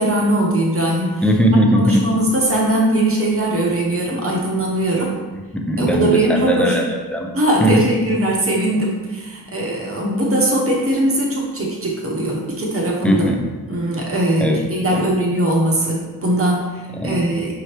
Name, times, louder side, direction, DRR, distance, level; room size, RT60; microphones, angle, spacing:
voice 1, 0.0-1.2 1.7-5.2 5.8-6.8 7.3-13.3 13.7-17.5, right 1 dB, 35° right, -2 dB, 0.8 m, -20 dB
voice 2, 1.2-2.0 5.5-7.3 7.6-7.9 13.0-13.4 14.4-14.6 14.9-15.0 16.9-17.2, equal, 5° left, 2 dB, 0.4 m, -18 dB
5.5 x 2.9 x 3.2 m, 1.3 s
wide cardioid pair, 160°, 39 cm